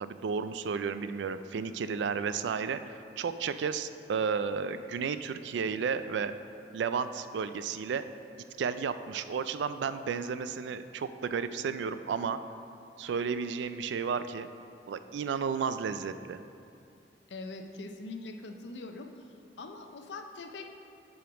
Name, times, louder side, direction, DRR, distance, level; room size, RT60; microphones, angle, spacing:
voice 1, 0.0-6.3 6.7-8.0 8.6-12.4 13.0-14.5 14.9-16.4, right 6 dB, 70° right, 11 dB, 0.3 m, -32 dB
voice 2, 17.3-19.2 19.6-20.7, left 3 dB, 70° left, 5 dB, 0.6 m, -42 dB
7.6 x 5.1 x 5.0 m, 2.5 s
head